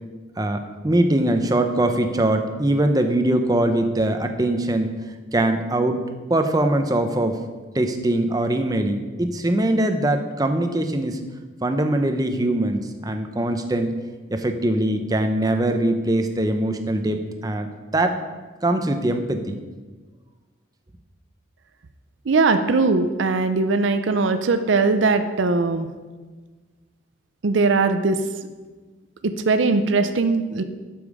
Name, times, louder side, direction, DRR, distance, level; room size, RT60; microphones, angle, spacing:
voice 1, 0.4-4.9 5.3-6.0 6.3-7.4 7.7-11.2 11.6-14.0 14.3-18.2 18.6-19.6, right 1 dB, 20° right, 6 dB, 0.6 m, -22 dB
voice 2, 22.3-25.9 27.4-28.2 29.2-30.6, right 3 dB, 70° right, 9 dB, 0.5 m, -20 dB
8.5 x 7.1 x 4.9 m, 1.3 s
head